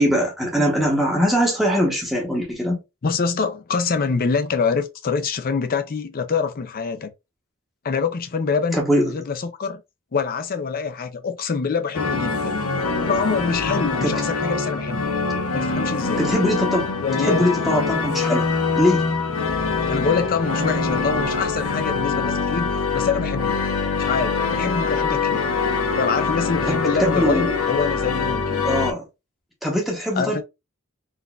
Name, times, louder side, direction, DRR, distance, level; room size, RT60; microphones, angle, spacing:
voice 1, 0.0-2.8 8.7-9.1 14.0-14.2 16.2-16.9 17.2-18.5 18.8-19.0 26.6-27.5 28.6-29.0 29.6-30.4, equal, ahead, 0.8 m, -21 dB
voice 2, 3.0-7.1 7.8-9.8 10.1-12.7 13.1-15.1 15.5-16.2 17.0-17.4 19.9-23.6 24.0-25.4 25.9-28.6 30.2-30.4, left 5 dB, 40° left, 0.5 m, -25 dB
sound 1, 11.9-28.9, left 4 dB, 80° left, 0.7 m, -24 dB
3.9 x 2.5 x 2.3 m
head